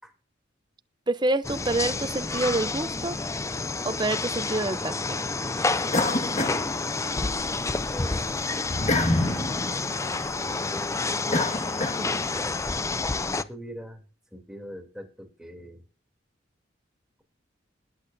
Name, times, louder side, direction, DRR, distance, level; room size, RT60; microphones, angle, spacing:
voice 1, 1.1-3.2 3.8-5.2 12.0-12.1, right 2 dB, 25° right, 0.7 m, -28 dB
sound 1, 1.4-13.4, left 3 dB, 15° left, 0.5 m, -29 dB
sound 2, 5.9-7.4 7.8-12.4, left 2 dB, 35° left, 1.9 m, -29 dB
voice 2, 7.5-8.7 12.3-12.6 13.2-14.0 14.3-15.8, equal, 5° right, 3.2 m, -42 dB
20.5 x 8.4 x 2.7 m
head